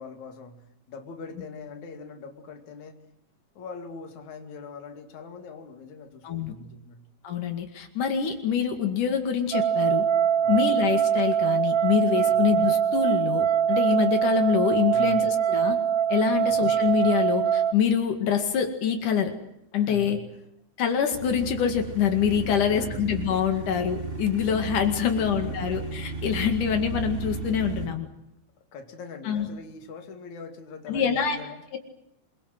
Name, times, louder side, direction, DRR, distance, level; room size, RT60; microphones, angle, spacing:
voice 1, 0.0-3.0 3.6-7.0 10.4-10.6 12.2-12.4 14.9-15.3 16.3-16.8 19.8-20.3 22.4-23.1 23.5-23.7 24.9-25.6 28.6-31.6, left 4 dB, 70° left, 5 dB, 3.7 m, -42 dB
voice 2, 7.2-10.1 10.5-15.8 16.1-19.3 19.7-20.2 20.8-28.1 29.3-29.5 30.9-31.4 31.7-31.8, left 7 dB, 85° left, 5 dB, 3.7 m, -25 dB
sound 1, 9.5-17.7, right 9 dB, 60° right, 1.8 m, -23 dB
sound 2, 21.1-27.9, right 4 dB, 15° right, 3.5 m, -35 dB
27.5 x 22.5 x 7.8 m, 0.78 s
omnidirectional pair, 3.5 m